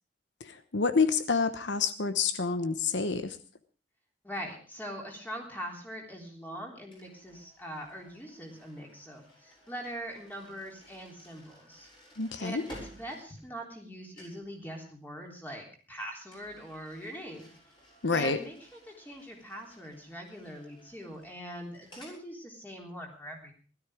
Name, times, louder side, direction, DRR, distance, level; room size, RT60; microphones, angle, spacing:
voice 1, 0.4-3.4 12.2-12.6 18.0-18.4, left 4 dB, 75° left, 11 dB, 1.0 m, -28 dB
voice 2, 4.2-11.9 12.4-17.5 18.1-18.6 18.9-23.5, equal, 10° left, 1 dB, 3.6 m, -42 dB
sound 1, 6.9-13.9 14.1-14.5 16.3-22.2, equal, 25° left, 6.6 m, -55 dB
16.5 x 13.0 x 4.9 m, 0.40 s
head